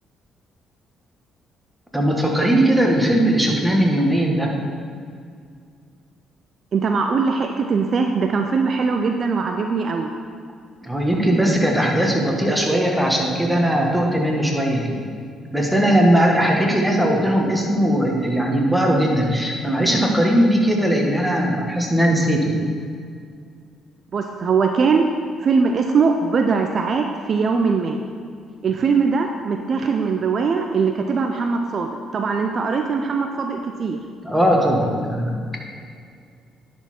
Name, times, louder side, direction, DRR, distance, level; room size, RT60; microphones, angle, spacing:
voice 1, 1.9-4.5 10.8-15.0 15.5-22.6 34.2-35.6, right 1 dB, 5° right, 0 dB, 1.7 m, -19 dB
voice 2, 6.7-10.1 24.1-25.1 25.4-28.0 28.6-34.0, right 5 dB, 50° right, 4 dB, 0.5 m, -21 dB
10.5 x 4.4 x 4.4 m, 2.2 s
hypercardioid pair, 50°, 0 cm